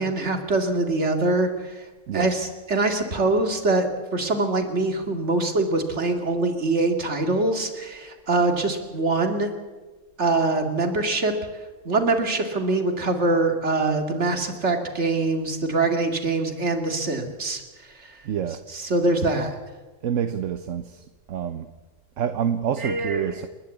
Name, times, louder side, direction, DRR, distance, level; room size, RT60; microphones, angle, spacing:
voice 1, 0.0-1.9 2.1-9.5 10.2-11.3 11.8-18.2 18.7-19.6 22.8-23.4, right 2 dB, 60° right, 5 dB, 2.5 m, -24 dB
voice 2, 18.2-18.6 20.0-21.7 22.2-23.5, right 8 dB, 75° right, 10 dB, 1.2 m, -27 dB
29.5 x 11.5 x 8.3 m, 1.3 s
omnidirectional pair, 1.3 m